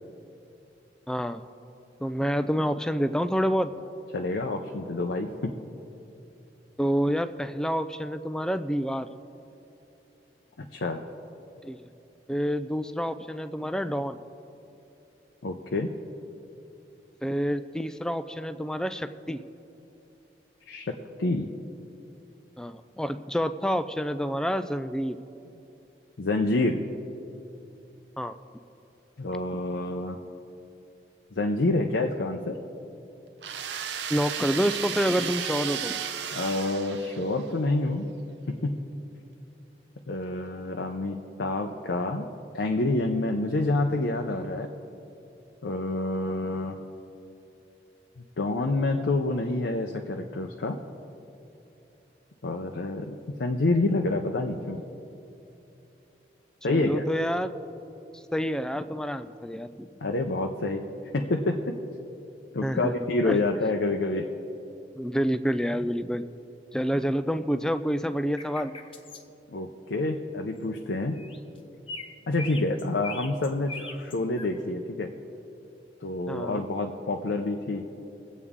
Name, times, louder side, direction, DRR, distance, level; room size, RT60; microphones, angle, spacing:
voice 1, 1.1-1.4 2.0-3.7 6.8-9.1 11.6-11.9 12.3-14.2 17.2-19.4 22.6-25.2 28.2-28.4 34.1-36.0 56.7-57.5 58.1-59.9 62.6-62.9 63.2-63.4 64.9-66.3 66.7-68.7 76.3-76.6, equal, 5° left, 11 dB, 0.3 m, -28 dB
voice 2, 4.1-5.5 10.6-11.0 15.4-15.9 20.7-20.9 21.2-21.5 26.2-26.8 29.2-30.2 31.3-32.6 36.3-38.1 38.5-38.9 40.1-42.3 42.5-44.7 45.6-46.8 48.2-50.8 52.4-54.8 56.6-57.0 60.0-60.8 61.1-61.8 62.5-64.3 69.5-71.2 72.3-75.1 76.0-77.8, left 2 dB, 85° left, 3 dB, 0.7 m, -28 dB
sound 1, 33.4-37.5, right 8 dB, 80° right, 0.6 m, -34 dB
sound 2, 68.4-69.2 71.1-71.6 71.9-74.5, left 3 dB, 30° left, 0.8 m, -40 dB
22.5 x 8.2 x 3.6 m, 2.9 s
head